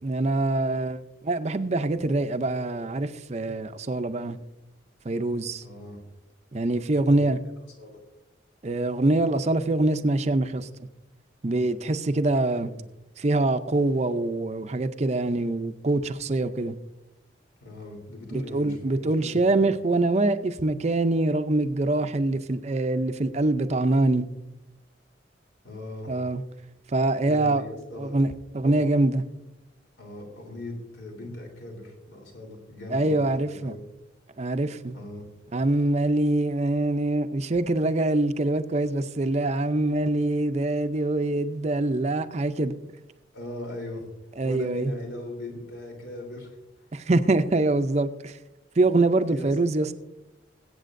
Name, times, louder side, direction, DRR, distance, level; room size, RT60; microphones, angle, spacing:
voice 1, 0.0-4.4 5.0-5.6 6.5-7.4 8.6-10.7 11.4-12.7 13.2-16.8 18.3-24.3 26.1-26.4 26.9-27.6 28.0-28.3 28.5-29.2 32.9-33.7 34.4-34.9 35.5-42.7 44.4-44.9 46.9-48.3 48.8-49.9, right 2 dB, 35° right, 0.5 m, -24 dB
voice 2, 5.6-6.0 6.9-7.3 7.8-8.0 12.5-12.8 17.6-19.6 25.6-26.1 27.2-28.3 28.6-28.9 30.0-33.8 34.9-35.3 43.3-44.0 44.4-46.6 49.3-49.6, left 1 dB, 80° left, 3.3 m, -39 dB
21.5 x 8.4 x 2.6 m
head